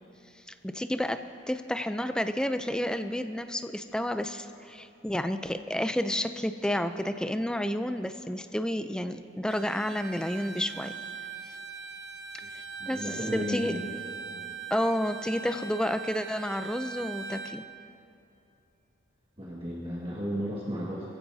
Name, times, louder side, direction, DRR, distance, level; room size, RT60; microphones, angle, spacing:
voice 1, 0.6-1.2 1.5-10.9 12.9-13.1 13.3-13.7 14.7-17.6, equal, 5° left, 9 dB, 0.4 m, -30 dB
Bowed string instrument, 9.5-17.6, right 6 dB, 70° right, 1.1 m, -41 dB
voice 2, 12.8-13.9 19.4-21.1, equal, 30° right, -6 dB, 1.8 m, -34 dB
23.5 x 15.5 x 2.8 m, 2.8 s
head